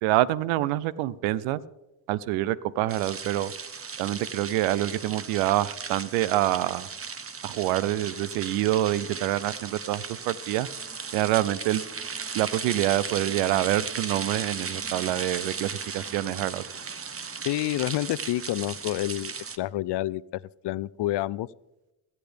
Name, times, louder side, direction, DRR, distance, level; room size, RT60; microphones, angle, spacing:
voice 1, 0.0-1.6 2.1-3.5 4.0-6.9 7.4-10.7 11.1-11.8 12.3-15.7 15.9-16.6, right 15 dB, 90° right, 20 dB, 0.6 m, -26 dB
sound 1, 2.9-19.6, right 5 dB, 30° right, 1.0 m, -36 dB
voice 2, 17.4-20.2 20.6-21.5, left 15 dB, 60° left, 21 dB, 0.6 m, -28 dB
25.5 x 8.4 x 3.4 m, 1.0 s
supercardioid pair, 55°, 48 cm